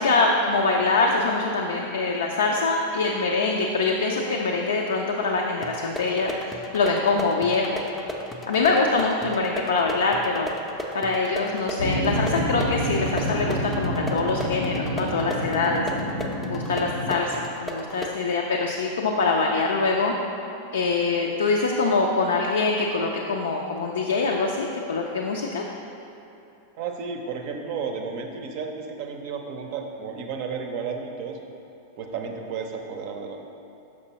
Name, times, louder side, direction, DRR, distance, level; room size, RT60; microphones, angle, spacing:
voice 1, 0.0-7.8 8.5-10.5 10.9-15.9 16.5-20.1 20.7-25.6, left 3 dB, 65° left, 0 dB, 0.4 m, -24 dB
sound 1, 5.6-18.2, equal, 10° left, 0.5 m, -36 dB
sound 2, 11.8-17.1, equal, 90° right, 0.6 m, -28 dB
voice 2, 26.8-31.4 32.0-33.4, right 5 dB, 45° right, 4 dB, 0.6 m, -32 dB
6.3 x 5.8 x 2.9 m, 2.8 s
figure-of-eight pair, 90°, 0 cm